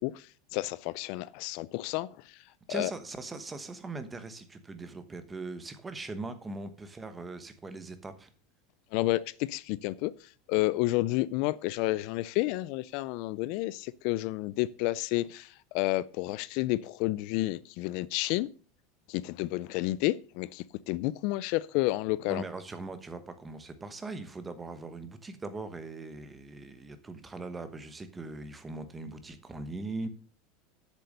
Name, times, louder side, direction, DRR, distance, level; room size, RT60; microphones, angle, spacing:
voice 1, 0.0-2.4 2.7-2.9 8.9-18.5 19.1-22.4, left 18 dB, 55° left, 0.3 m, -30 dB
voice 2, 2.7-8.3 22.3-30.1, right 3 dB, 10° right, 1.1 m, -40 dB
8.1 x 6.7 x 6.6 m
supercardioid pair, 150°, 0 cm